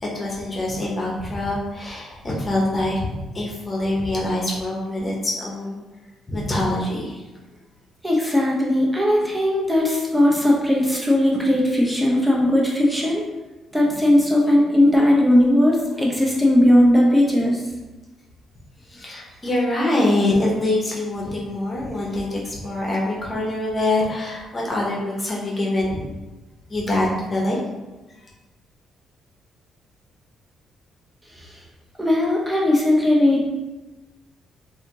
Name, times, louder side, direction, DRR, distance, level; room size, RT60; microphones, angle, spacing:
voice 1, 0.0-5.8 6.3-7.2 18.9-26.1 26.7-27.6, left 1 dB, 30° left, -3 dB, 0.9 m, -24 dB
voice 2, 8.0-13.2 13.7-17.6 31.3-31.6 32.0-33.5, left 1 dB, 5° right, -3 dB, 0.8 m, -18 dB
3.3 x 2.7 x 2.9 m, 1.1 s
cardioid pair, 90°, 0 cm